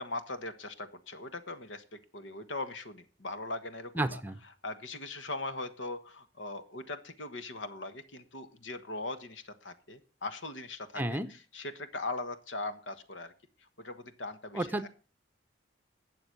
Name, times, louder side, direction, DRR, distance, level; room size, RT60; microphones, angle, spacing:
voice 1, 0.0-4.2 4.6-13.3 13.8-14.7, left 2 dB, 85° left, 10 dB, 1.4 m, -40 dB
voice 2, 3.9-4.4 11.0-11.3 14.5-14.9, right 1 dB, 10° right, 10 dB, 0.7 m, -31 dB
12.0 x 7.9 x 6.6 m, 0.38 s
head